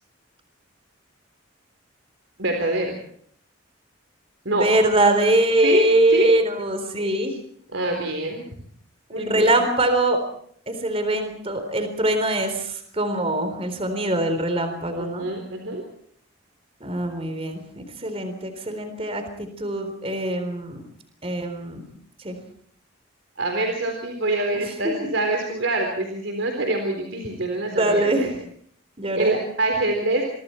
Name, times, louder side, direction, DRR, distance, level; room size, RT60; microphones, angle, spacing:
voice 1, 2.4-3.0 4.5-4.7 5.6-6.3 7.7-8.4 9.1-9.5 14.9-15.8 23.4-28.3 29.1-30.2, right 2 dB, 70° right, 3 dB, 4.0 m, -25 dB
voice 2, 4.5-7.3 9.1-10.2 10.7-15.3 16.8-20.8 21.2-21.8 22.2-22.4 25.0-25.1 27.7-28.3 29.0-29.3, right 1 dB, 30° right, 7 dB, 3.8 m, -23 dB
27.5 x 24.0 x 4.5 m, 0.62 s
head